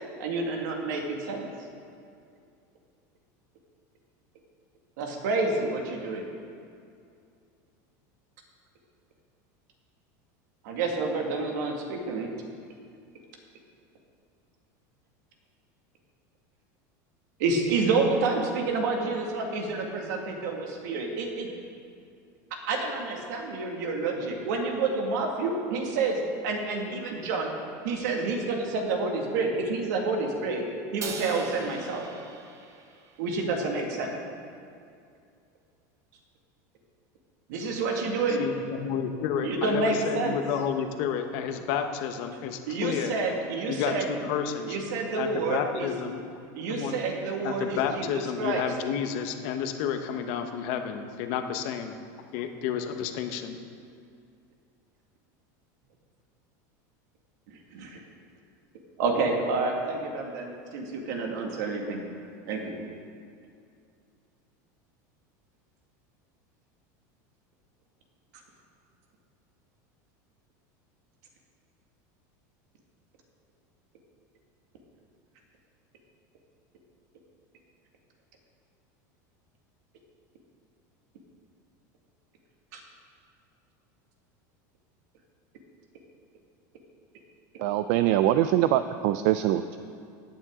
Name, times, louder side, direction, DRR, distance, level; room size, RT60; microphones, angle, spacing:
voice 1, 0.2-1.5 5.0-6.3 10.6-12.3 17.4-21.5 22.7-27.6 27.8-30.6 30.9-32.1 33.2-34.2 37.5-38.4 39.4-40.4 42.7-44.1 44.7-45.9 46.5-48.6 57.7-58.0 59.0-62.0 62.5-62.7 82.7-82.8, right 3 dB, 75° right, 1 dB, 2.0 m, -29 dB
Crash cymbal, 31.0-33.4, right 5 dB, 30° right, 1.0 m, -41 dB
voice 2, 38.3-43.2 43.7-44.8 45.2-46.3 46.7-47.0 47.4-52.0 52.3-53.6, left 8 dB, 60° left, 6 dB, 1.0 m, -31 dB
voice 3, 87.6-89.8, right 13 dB, 60° right, 11 dB, 0.4 m, -23 dB
16.0 x 9.3 x 3.8 m, 2.4 s
supercardioid pair, 150°, 10 cm